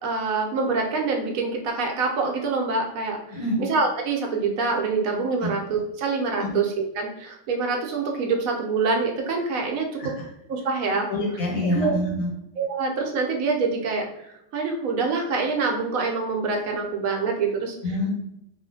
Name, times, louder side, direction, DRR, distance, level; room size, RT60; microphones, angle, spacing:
voice 1, 0.0-10.1 10.5-11.1 11.6-12.0 12.6-14.1 14.5-17.8, right 4 dB, 80° right, 1 dB, 1.0 m, -25 dB
voice 2, 11.1-12.3 17.8-18.1, left 1 dB, 85° left, -4 dB, 1.6 m, -26 dB
3.0 x 2.4 x 2.6 m, 0.79 s
omnidirectional pair, 1.5 m